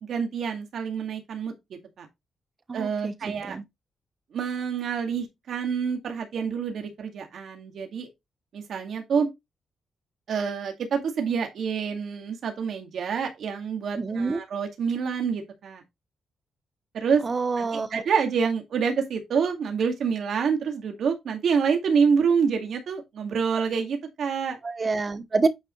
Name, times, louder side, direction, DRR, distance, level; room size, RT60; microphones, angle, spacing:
voice 1, 0.0-1.5 2.0-2.1 2.7-3.6 4.3-8.1 8.5-9.3 10.3-15.8 16.9-17.2 17.6-24.6, right 6 dB, 70° right, 2.1 m, -27 dB
voice 2, 2.7-3.1 3.5-3.6 14.0-14.4 17.2-18.0 24.6-25.5, right 4 dB, 35° right, 1.0 m, -27 dB
9.5 x 5.0 x 3.2 m
cardioid pair, 95°, 0 cm